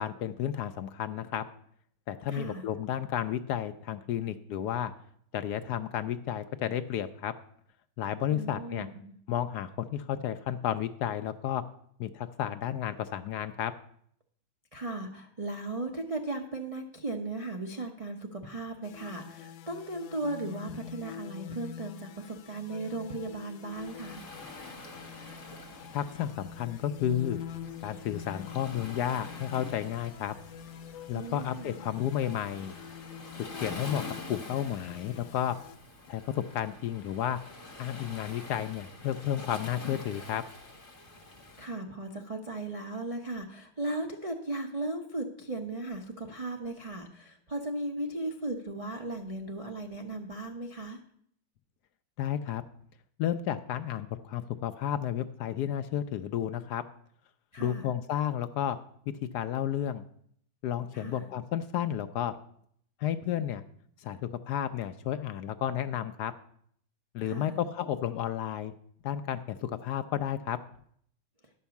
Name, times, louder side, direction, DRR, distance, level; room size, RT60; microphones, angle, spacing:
voice 1, 0.0-1.4 2.1-4.9 5.3-7.3 8.0-8.9 9.3-11.6 12.0-13.7 25.9-27.4 27.8-30.3 31.1-32.7 33.6-34.0 34.3-35.6 36.1-37.4 37.8-40.4 52.2-52.6 53.2-56.8 57.6-58.8 59.3-60.1 60.6-62.3 63.0-63.6 64.0-66.3 67.1-68.7 69.0-70.6, left 10 dB, 70° left, 11 dB, 1.0 m, -32 dB
voice 2, 2.3-2.6 8.3-9.1 14.7-24.2 31.1-31.9 41.6-51.0 57.5-57.9 60.9-61.3 67.2-67.5, right 2 dB, 45° right, 2 dB, 0.4 m, -37 dB
sound 1, 18.8-35.8, left 8 dB, 90° left, 1.4 m, -45 dB
Waves surf, 23.7-41.7, left 2 dB, 45° left, 2.0 m, -47 dB
11.5 x 5.5 x 7.0 m, 0.65 s
omnidirectional pair, 2.0 m